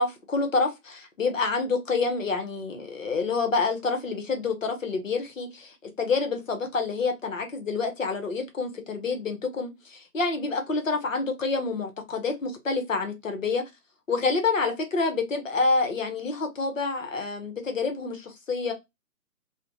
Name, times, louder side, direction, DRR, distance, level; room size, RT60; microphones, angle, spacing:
voice 1, 0.0-13.6 14.1-18.7, left 4 dB, 50° left, 0.8 m, -28 dB
3.0 x 2.1 x 2.4 m
hypercardioid pair, 165°, 49 cm